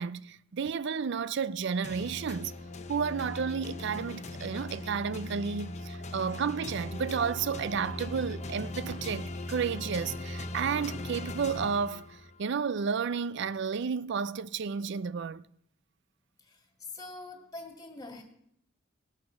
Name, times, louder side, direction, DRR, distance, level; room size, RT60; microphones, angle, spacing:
voice 1, 0.0-2.5 2.9-15.4, right 6 dB, 60° right, 0.4 m, -32 dB
sound 1, 1.8-12.4, left 2 dB, 35° left, 0.8 m, -39 dB
voice 2, 16.9-18.2, left 2 dB, 20° left, 2.1 m, -44 dB
18.5 x 6.4 x 5.7 m
head